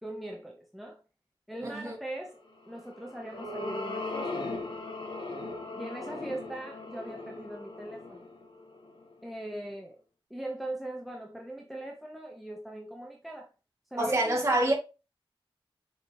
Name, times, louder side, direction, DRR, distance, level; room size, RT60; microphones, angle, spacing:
voice 1, 0.0-1.0 1.5-4.5 5.7-8.3 9.2-10.0 10.3-13.5 13.9-14.3, right 1 dB, ahead, 0.9 m, -40 dB
voice 2, 1.6-2.0 14.0-14.7, right 1 dB, 30° right, 2.2 m, -26 dB
sound 1, 2.7-9.2, left 2 dB, 60° left, 1.6 m, -39 dB
6.5 x 4.8 x 3.0 m
wide cardioid pair, 110°, 9 cm